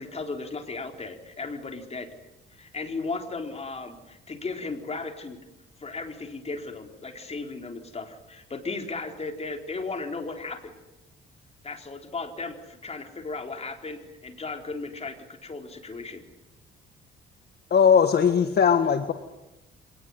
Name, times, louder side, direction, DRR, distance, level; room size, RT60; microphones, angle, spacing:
voice 1, 0.0-2.1 2.5-5.4 5.8-10.7 11.6-16.2, left 3 dB, 30° left, 4 dB, 4.2 m, -36 dB
voice 2, 17.7-19.1, left 7 dB, 55° left, 8 dB, 1.7 m, -19 dB
25.5 x 19.5 x 9.8 m, 0.95 s
cardioid pair, 90°, 20 cm